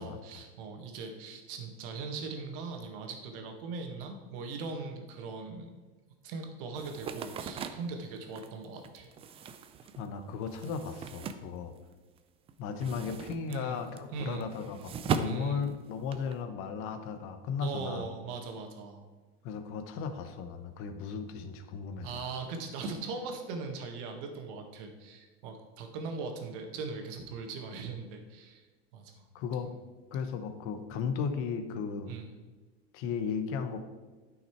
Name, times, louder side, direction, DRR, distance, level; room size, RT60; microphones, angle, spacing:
voice 1, 0.0-5.7 6.2-9.1 13.5-13.8 14.1-14.5 15.2-15.6 17.6-19.0 22.0-28.6 28.9-29.2 32.1-32.3, right 4 dB, 60° right, 5 dB, 1.7 m, -40 dB
sound 1, 6.7-12.2 12.5-16.4, right 6 dB, 20° right, 0.4 m, -39 dB
voice 2, 9.9-11.7 12.6-18.1 19.4-22.3 29.3-29.7 30.1-32.1 32.9-33.8, left 6 dB, 45° left, 8 dB, 1.0 m, -35 dB
9.7 x 5.9 x 4.5 m, 1.3 s
supercardioid pair, 140°, 30 cm